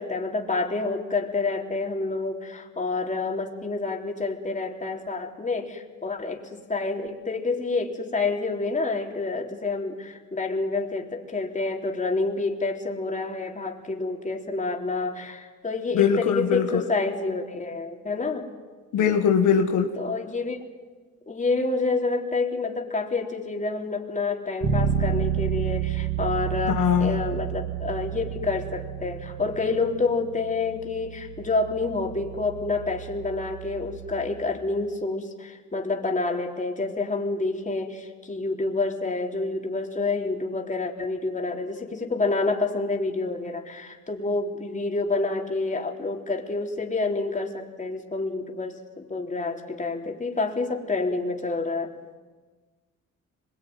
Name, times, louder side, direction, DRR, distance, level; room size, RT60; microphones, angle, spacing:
voice 1, 0.0-18.5 20.0-20.6 21.3-51.9, left 3 dB, 25° left, 1 dB, 3.7 m, -28 dB
voice 2, 15.9-16.8 18.9-19.9 26.7-27.2, left 7 dB, 80° left, 4 dB, 1.9 m, -21 dB
Bass guitar, 24.6-34.4, right 9 dB, 80° right, 3.4 m, -31 dB
25.5 x 22.5 x 9.5 m, 1.4 s
cardioid pair, 90°, 30 cm